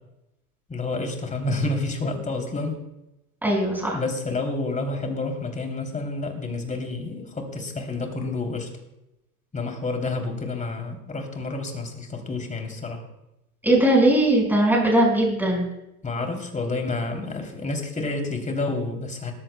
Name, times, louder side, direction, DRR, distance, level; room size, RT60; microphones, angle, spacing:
voice 1, 0.7-2.8 3.9-8.7 9.5-13.0 16.0-19.3, left 2 dB, 15° left, 4 dB, 3.1 m, -29 dB
voice 2, 3.4-4.0 13.6-15.7, right 1 dB, 5° right, -1 dB, 5.3 m, -19 dB
19.0 x 14.5 x 2.2 m, 0.89 s
hypercardioid pair, 90°, 43 cm